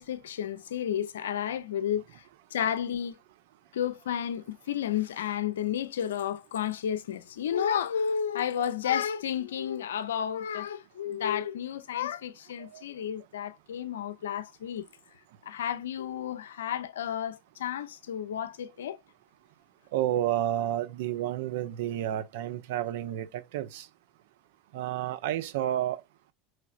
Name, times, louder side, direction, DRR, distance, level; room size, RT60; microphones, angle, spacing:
voice 1, 0.0-2.0 2.5-3.2 3.7-14.8 15.5-19.0, left 9 dB, 75° left, 0.4 m, -32 dB
voice 2, 19.9-23.9 24.7-26.0, right 12 dB, 65° right, 0.5 m, -30 dB
4.8 x 3.2 x 2.4 m
figure-of-eight pair, 75°, 0 cm